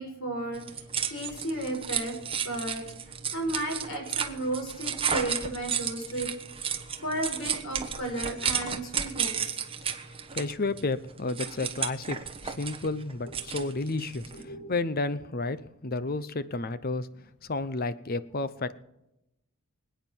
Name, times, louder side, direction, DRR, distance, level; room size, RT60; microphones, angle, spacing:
voice 1, 0.0-2.2 2.4-2.8 3.3-6.3 6.6-9.4 14.3-14.7, right 1 dB, 70° left, 2 dB, 5.6 m, -34 dB
sound 1, 0.5-14.4, right 7 dB, 25° right, 1.2 m, -33 dB
voice 2, 10.3-17.1 17.4-18.8, left 3 dB, 40° left, 14 dB, 0.8 m, -31 dB
25.5 x 9.2 x 4.6 m, 0.88 s
head